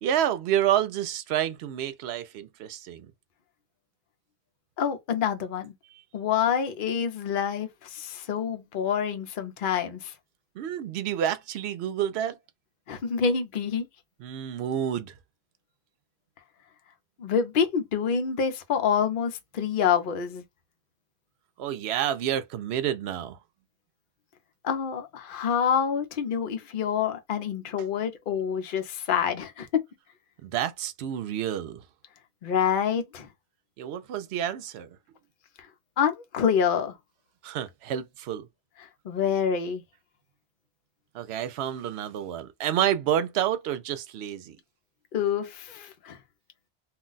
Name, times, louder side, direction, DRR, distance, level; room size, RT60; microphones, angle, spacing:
voice 1, 0.0-3.1 10.6-12.4 14.2-15.1 21.6-23.4 30.4-31.8 33.8-34.9 37.4-38.5 41.1-44.6, right 10 dB, 75° right, 0.8 m, -29 dB
voice 2, 4.8-5.7 6.1-10.1 12.9-13.9 17.2-20.4 24.6-29.8 32.4-33.3 36.0-36.9 39.0-39.8 45.1-46.2, left 7 dB, 55° left, 0.8 m, -27 dB
2.3 x 2.2 x 3.8 m
omnidirectional pair, 1.1 m